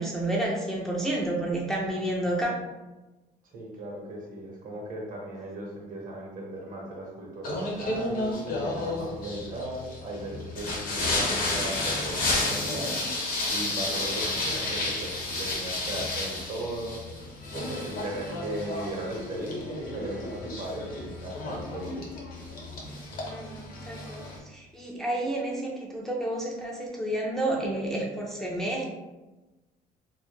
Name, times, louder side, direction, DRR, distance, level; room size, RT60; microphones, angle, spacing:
voice 1, 0.0-2.6 23.3-28.9, right 1 dB, ahead, -3 dB, 0.4 m, -30 dB
voice 2, 3.4-13.0 13.5-21.9, right 1 dB, 50° right, -2 dB, 0.8 m, -37 dB
Singing, 7.4-24.4, left 2 dB, 60° left, 0.7 m, -32 dB
2.1 x 2.1 x 3.0 m, 1.1 s
cardioid pair, 110°, 17 cm